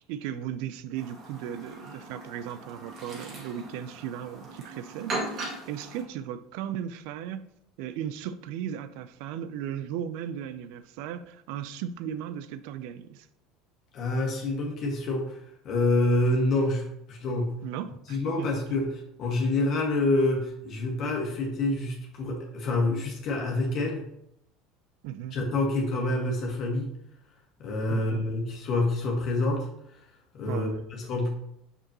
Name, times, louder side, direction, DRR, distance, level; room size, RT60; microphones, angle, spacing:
voice 1, 0.1-7.5 7.8-13.3 17.6-18.8 25.0-25.4 27.9-28.2 30.4-30.8, right 10 dB, 70° right, 0.4 m, -36 dB
Chirp tweet, 0.9-6.0, right 2 dB, 50° right, 2.2 m, -39 dB
voice 2, 13.9-17.5 18.1-24.0 25.3-26.9 27.6-30.0 30.3-31.3, left 2 dB, 50° left, 1.6 m, -27 dB
6.1 x 5.2 x 2.9 m
supercardioid pair, 90°, 0 cm